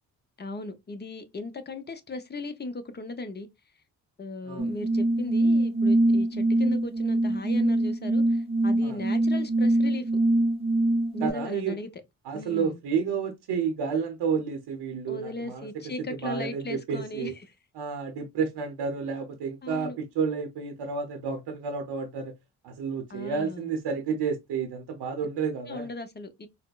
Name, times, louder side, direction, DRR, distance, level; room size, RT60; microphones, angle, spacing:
voice 1, 0.4-3.5 4.2-10.1 11.1-11.9 12.3-12.8 15.1-17.5 19.6-20.0 23.1-23.7 25.7-26.5, left 2 dB, 25° left, 0.6 m, -37 dB
sound 1, 4.6-11.3, right 1 dB, 15° right, 0.6 m, -23 dB
voice 2, 11.2-11.8 12.3-15.7 16.2-17.3 17.8-22.3 22.6-25.9, right 6 dB, 85° right, 0.7 m, -30 dB
4.1 x 2.1 x 2.3 m
cardioid pair, 85°, 40 cm